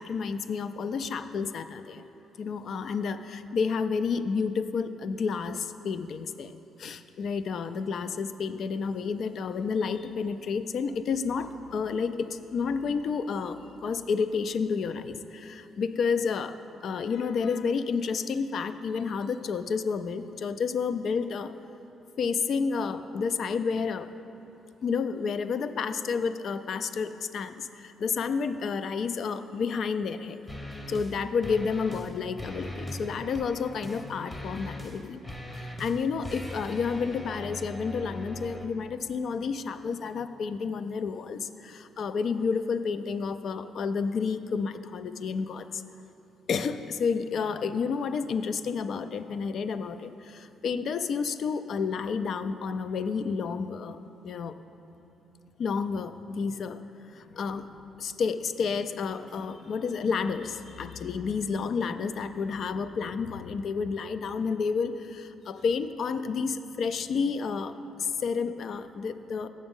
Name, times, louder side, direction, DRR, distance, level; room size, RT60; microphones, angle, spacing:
voice 1, 0.0-2.0 2.4-6.5 6.8-21.5 22.2-24.1 24.8-30.4 30.9-35.2 35.6-45.8 46.5-54.0 54.2-54.5 55.6-56.8 57.1-69.5, left 5 dB, 60° left, 11 dB, 0.3 m, -30 dB
sound 1, 30.5-31.2 31.4-32.1 32.4-38.7, left 1 dB, 15° left, 0.8 m, -40 dB
7.0 x 6.4 x 5.3 m, 2.9 s
cardioid pair, 90°, 0 cm